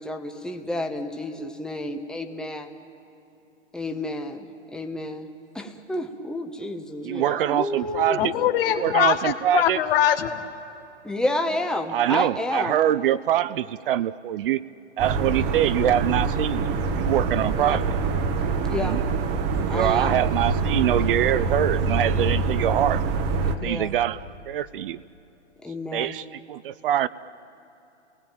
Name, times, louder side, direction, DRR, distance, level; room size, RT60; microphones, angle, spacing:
voice 1, 0.0-2.8 3.7-4.5 4.7-5.3 5.5-8.2 11.0-12.8 17.6-17.8 18.7-19.0 19.7-20.2 23.6-23.9 25.6-26.1, left 1 dB, ahead, 4 dB, 1.3 m, -30 dB
voice 2, 7.0-8.3 8.8-9.8 11.9-14.6 15.0-16.7 17.0-17.8 18.7-19.0 19.7-23.0 23.6-25.0 25.9-27.1, right 11 dB, 50° right, 16 dB, 0.6 m, -24 dB
voice 3, 8.2-10.4, left 11 dB, 50° left, 8 dB, 1.6 m, -22 dB
sound 1, 15.0-23.6, right 4 dB, 30° right, 1.4 m, -25 dB
29.5 x 19.0 x 9.1 m, 2.9 s
hypercardioid pair, 125°, 35 cm